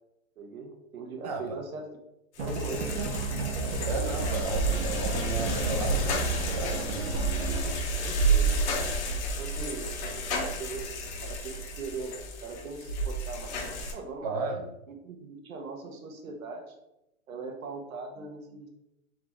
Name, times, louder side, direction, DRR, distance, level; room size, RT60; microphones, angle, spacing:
voice 1, 0.4-1.9 2.4-3.1 8.0-9.0 9.4-9.9 10.2-14.6 14.9-16.7 17.3-18.7, right 3 dB, 80° right, 4 dB, 1.1 m, -40 dB
voice 2, 1.2-1.6 3.8-7.1 14.2-14.7, right 3 dB, 30° right, 4 dB, 0.4 m, -34 dB
sound 1, 2.4-13.9, right 2 dB, 55° left, 0.9 m, -30 dB
sound 2, 2.4-7.9, right 3 dB, 50° right, 0.9 m, -33 dB
3.8 x 3.2 x 3.6 m, 0.87 s
hypercardioid pair, 160°, 40 cm